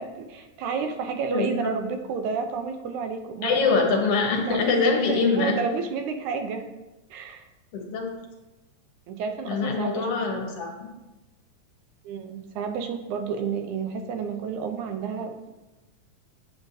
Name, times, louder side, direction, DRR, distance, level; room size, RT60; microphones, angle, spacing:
voice 1, 0.0-3.6 4.4-4.7 5.1-6.7 7.1-7.4 9.1-10.2 12.0-15.5, right 5 dB, 85° right, 6 dB, 2.1 m, -31 dB
voice 2, 1.3-1.7 3.4-5.6 7.7-8.1 9.5-10.7, left 4 dB, 65° left, 1 dB, 1.7 m, -24 dB
7.9 x 7.2 x 2.7 m, 1.1 s
omnidirectional pair, 3.3 m